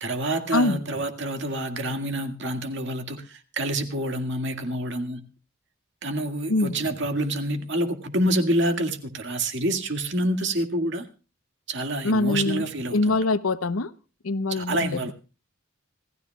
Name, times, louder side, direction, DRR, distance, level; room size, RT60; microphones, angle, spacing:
voice 1, 0.0-5.2 6.0-11.1 11.7-13.2 14.5-15.1, right 1 dB, 60° right, 6 dB, 2.0 m, -27 dB
voice 2, 0.5-0.8 6.5-6.8 12.0-13.9 14.2-15.1, left 2 dB, 90° left, 14 dB, 0.8 m, -24 dB
27.0 x 15.0 x 2.3 m, 0.35 s
head